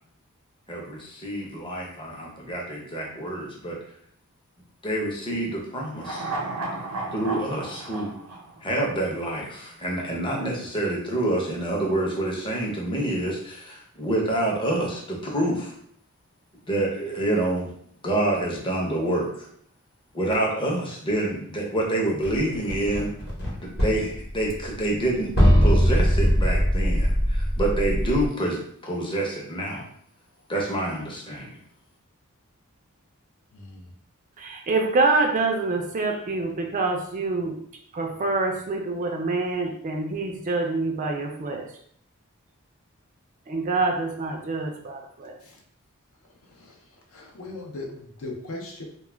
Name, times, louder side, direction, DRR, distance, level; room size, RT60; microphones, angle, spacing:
voice 1, 0.7-3.8 4.8-6.3 7.1-8.1 8.6-15.7 16.7-17.7 18.0-19.5 20.1-23.1 23.6-25.3 25.6-29.9 30.5-31.6, right 1 dB, 25° left, -1 dB, 0.6 m, -27 dB
sound 1, 5.9-9.3 9.6-9.7, right 2 dB, 85° right, 0.6 m, -34 dB
sound 2, 22.2-23.5 23.8-24.8 25.1-25.2 25.4-28.3, equal, 50° left, 1.0 m, -21 dB
voice 2, 33.5-33.9 45.4-45.6 46.5-46.8 47.1-48.8, left 2 dB, 65° left, 0 dB, 0.6 m, -38 dB
voice 3, 34.4-37.6 37.9-41.7 43.5-45.4, right 3 dB, 35° right, 2 dB, 0.3 m, -26 dB
2.2 x 2.1 x 3.2 m, 0.65 s
head